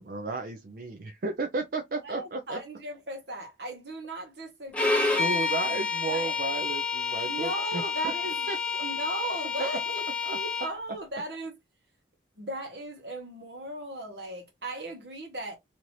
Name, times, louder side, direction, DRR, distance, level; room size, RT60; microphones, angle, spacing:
voice 1, 0.0-2.6 5.0-8.1 8.5-8.9 9.6-9.7 10.3-10.4, right 3 dB, 55° right, 0.5 m, -34 dB
voice 2, 2.0-5.3 6.1-6.3 7.3-8.5 8.8-10.0 10.3-11.5 12.4-15.6, right 1 dB, 75° right, 1.2 m, -37 dB
Bowed string instrument, 4.7-10.7, left 4 dB, 5° left, 0.6 m, -29 dB
2.9 x 2.6 x 3.0 m
head